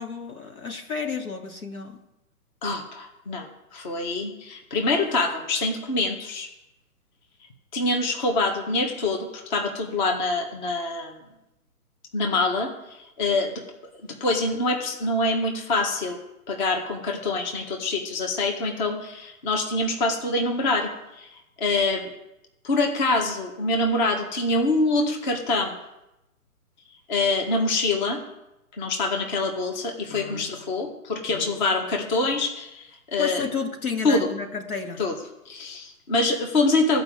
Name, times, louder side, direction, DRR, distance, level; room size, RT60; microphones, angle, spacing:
voice 1, 0.0-2.0 13.3-13.4 30.1-30.5 31.3-31.6 33.2-35.0, left 5 dB, 70° left, 4 dB, 2.2 m, -32 dB
voice 2, 2.6-6.5 7.7-11.2 12.1-13.6 14.2-16.2 16.5-21.3 21.6-22.1 22.6-25.7 27.1-28.2 28.8-33.4 34.0-34.3 35.0-35.1 35.4-37.0, left 2 dB, 30° left, 3 dB, 1.6 m, -25 dB
14.5 x 5.3 x 7.8 m, 0.92 s
figure-of-eight pair, 140°, 45 cm